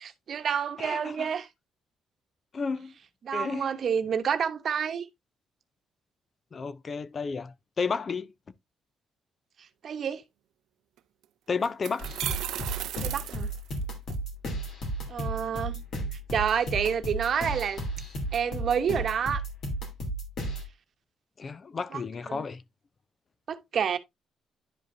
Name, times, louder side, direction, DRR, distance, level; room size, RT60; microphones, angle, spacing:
voice 1, 0.3-1.5 3.2-5.1 9.8-10.2 13.0-13.5 15.1-15.8 16.3-17.8 18.3-19.4 21.9-22.0 22.3-22.4 23.5-24.0, right 7 dB, 55° right, 1.0 m, -28 dB
voice 2, 0.8-1.3 2.5-2.9 3.3-3.7 6.5-8.3 11.5-12.1 21.4-22.6, left 5 dB, 40° left, 0.5 m, -32 dB
sound 1, 11.0-11.1 11.6-14.2, right 12 dB, 85° right, 0.5 m, -35 dB
sound 2, 12.0-20.6, right 1 dB, 65° left, 2.8 m, -34 dB
10.5 x 5.1 x 2.6 m
cardioid pair, 90°, 0 cm